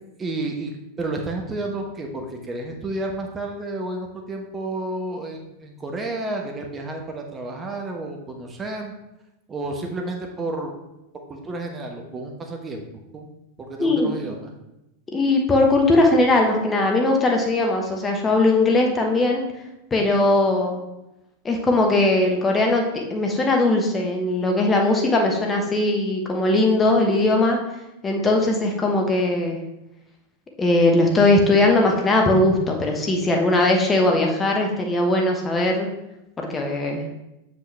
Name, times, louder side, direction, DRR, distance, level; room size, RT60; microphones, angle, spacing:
voice 1, 0.2-8.9 9.5-10.7 11.3-12.8 13.1-14.5, right 2 dB, 20° right, 2 dB, 1.0 m, -31 dB
voice 2, 13.8-14.2 15.1-19.4 19.9-20.8 21.4-27.6 28.0-29.6 30.6-35.9 36.4-37.0, left 2 dB, 15° left, 1 dB, 1.0 m, -19 dB
7.8 x 5.1 x 3.3 m, 0.92 s
figure-of-eight pair, 90°, 0 cm